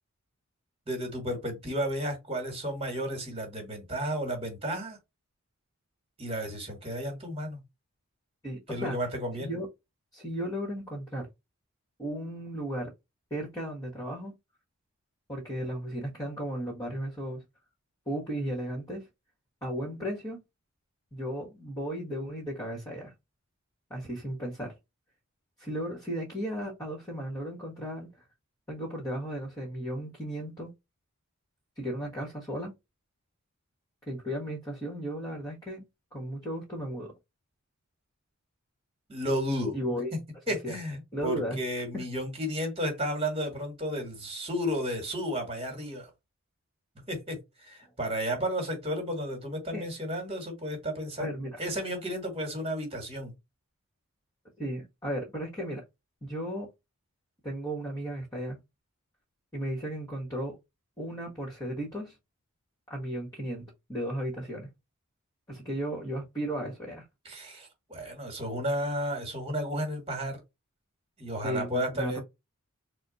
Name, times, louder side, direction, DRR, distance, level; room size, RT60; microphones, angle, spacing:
voice 1, 0.9-5.0 6.2-7.6 8.7-9.5 39.1-39.8 40.5-46.1 47.1-51.3 51.6-53.3 67.3-70.4 71.2-72.2, equal, 25° right, 1.7 m, -33 dB
voice 2, 8.4-9.0 9.4-9.7 10.1-11.3 12.0-12.9 13.3-14.3 15.3-17.4 18.1-19.1 19.6-20.4 21.1-23.1 23.9-24.7 25.6-28.1 28.7-30.7 31.8-32.7 34.1-35.8 36.1-37.1 39.7-40.1 40.6-40.7 41.1-41.6 41.9-42.0 49.7-49.8 51.2-51.6 54.6-55.8 56.2-56.7 57.4-58.6 59.5-60.6 61.0-62.1 62.9-64.7 65.5-67.0 71.4-72.2, equal, 15° left, 1.3 m, -35 dB
4.1 x 2.2 x 3.9 m
head